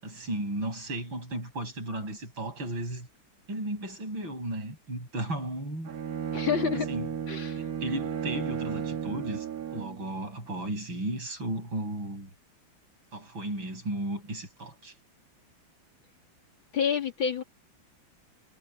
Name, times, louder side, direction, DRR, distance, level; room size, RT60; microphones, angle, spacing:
voice 1, 0.0-3.1 3.5-5.9 6.7-7.2 7.6-9.5 9.7-12.3 13.1-14.9, right 1 dB, 80° right, 8.6 m, -35 dB
Bowed string instrument, 5.8-10.1, right 8 dB, 50° right, 1.7 m, -34 dB
voice 2, 6.3-6.9 7.3-7.6 16.7-17.4, left 7 dB, 80° left, 3.9 m, -28 dB
omnidirectional pair, 2.1 m